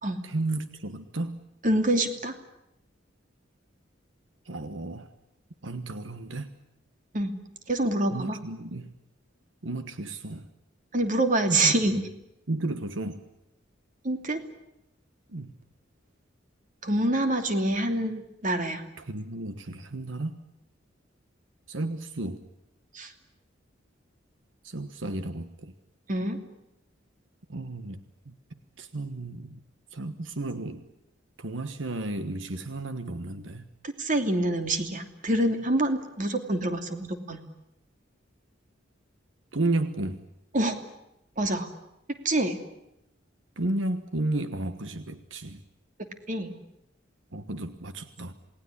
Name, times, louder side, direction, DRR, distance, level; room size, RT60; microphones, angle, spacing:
voice 1, 0.2-1.4 4.4-5.1 5.6-6.5 8.1-8.9 9.6-10.5 11.5-11.7 12.5-13.2 15.3-15.5 19.0-20.4 21.7-22.4 24.6-25.7 27.5-28.0 28.2-28.3 28.8-29.6 29.9-30.9 31.4-33.7 39.5-40.2 43.6-45.6 47.3-48.3, right 2 dB, 80° right, 10 dB, 1.3 m, -33 dB
voice 2, 1.6-2.3 7.1-7.3 7.7-8.4 10.9-12.0 14.0-14.4 16.8-18.8 22.9-23.1 26.1-26.4 33.8-37.4 40.5-40.8 41.4-41.7 42.2-42.6 46.3-46.6, right 1 dB, 45° right, 6 dB, 2.9 m, -26 dB
28.0 x 19.5 x 9.9 m, 0.86 s
head